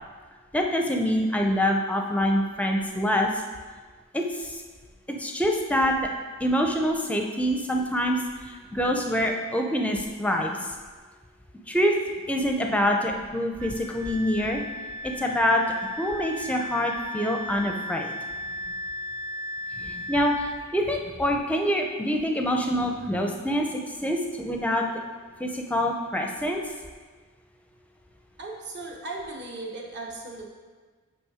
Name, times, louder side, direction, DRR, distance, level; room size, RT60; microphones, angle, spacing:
voice 1, 0.5-3.3 4.1-4.6 5.2-6.0 6.4-8.2 8.5-10.6 11.7-11.9 12.3-14.6 15.0-15.6 16.0-18.2 19.8-20.5 20.7-24.9 25.4-26.6, equal, 5° left, 2 dB, 0.5 m, -25 dB
Wind instrument woodwind instrument, 13.6-20.7, left 1 dB, 85° right, 0.4 m, -36 dB
voice 2, 28.4-30.5, right 2 dB, 50° right, -1 dB, 1.1 m, -37 dB
8.2 x 3.4 x 4.9 m, 1.4 s
head